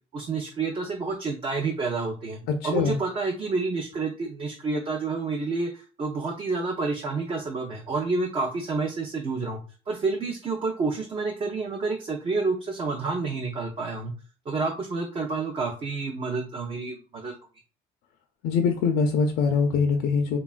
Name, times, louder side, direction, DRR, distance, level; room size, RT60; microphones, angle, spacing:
voice 1, 0.1-2.4 2.6-9.6 9.9-14.1 14.5-17.3, right 3 dB, 30° right, 2 dB, 0.4 m, -29 dB
voice 2, 2.5-3.0 18.4-20.4, left 5 dB, 85° left, 4 dB, 0.4 m, -23 dB
2.9 x 2.2 x 2.4 m, 0.38 s
cardioid pair, 110°, 17 cm